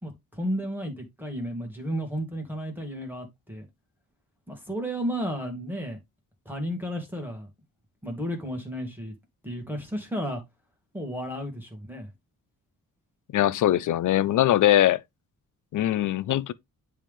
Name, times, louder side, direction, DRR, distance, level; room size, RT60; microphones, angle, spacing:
voice 1, 0.0-3.7 4.5-6.0 6.5-7.5 8.0-9.1 9.4-10.4 10.9-12.1, equal, 5° right, 2.0 m, -33 dB
voice 2, 13.3-15.0 15.7-16.5, left 13 dB, 60° left, 0.5 m, -21 dB
10.0 x 3.5 x 3.6 m
wide cardioid pair, 145°, 35 cm